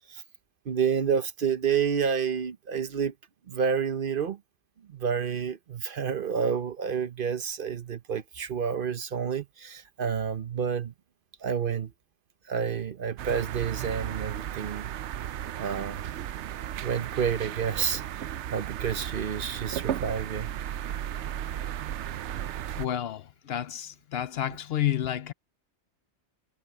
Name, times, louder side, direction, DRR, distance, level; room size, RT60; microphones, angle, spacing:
voice 1, 0.7-3.1 3.5-4.4 4.9-10.9 11.4-11.9 12.5-14.9 15.5-16.0 16.8-18.0 18.5-20.5 24.5-24.6, right 7 dB, 55° right, 0.9 m, -29 dB
sound 1, 13.2-22.9, right 11 dB, 80° right, 0.9 m, -35 dB
voice 2, 22.8-25.3, left 11 dB, 65° left, 0.8 m, -30 dB
omnidirectional pair, 1.2 m